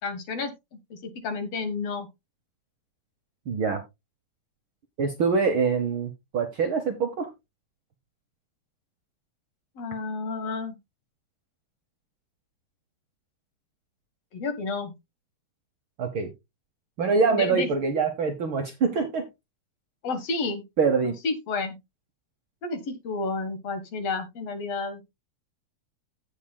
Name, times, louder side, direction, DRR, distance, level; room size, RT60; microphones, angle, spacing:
voice 1, 0.0-2.1 9.8-10.8 14.3-14.9 17.3-17.7 20.0-20.7 21.1-21.8 22.6-25.0, left 3 dB, 60° left, 2.4 m, -31 dB
voice 2, 3.5-3.8 5.0-7.3 16.0-16.3 17.0-19.2 20.8-21.1, right 5 dB, 60° right, 1.4 m, -24 dB
16.0 x 5.8 x 2.2 m
omnidirectional pair, 3.3 m